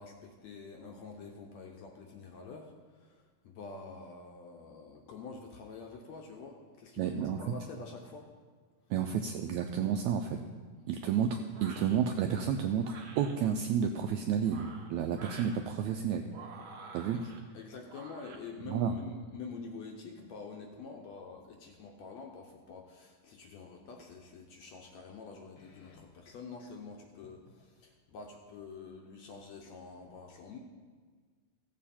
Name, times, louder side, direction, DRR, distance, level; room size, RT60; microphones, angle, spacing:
voice 1, 0.0-8.3 17.1-30.6, left 4 dB, 70° left, 2 dB, 1.7 m, -47 dB
voice 2, 7.0-7.5 8.9-10.4 10.9-16.2 16.9-17.2 18.7-19.0, right 8 dB, 85° right, 5 dB, 1.6 m, -31 dB
sound 1, 11.5-12.0 12.8-13.3 14.3-15.6 16.3-17.4 17.9-18.4, right 4 dB, 65° right, 1.3 m, -49 dB
15.5 x 7.4 x 4.2 m, 1.5 s
omnidirectional pair, 3.8 m